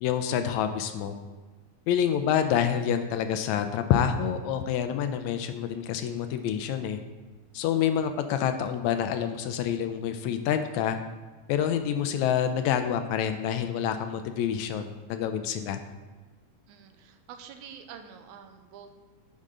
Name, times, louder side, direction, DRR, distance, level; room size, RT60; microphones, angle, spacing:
voice 1, 0.0-1.2 1.9-7.0 7.5-11.0 11.5-15.8, left 9 dB, 80° left, 8 dB, 1.8 m, -27 dB
voice 2, 16.7-19.0, right 7 dB, 85° right, 6 dB, 2.0 m, -47 dB
10.0 x 5.3 x 3.7 m, 1.3 s
omnidirectional pair, 3.4 m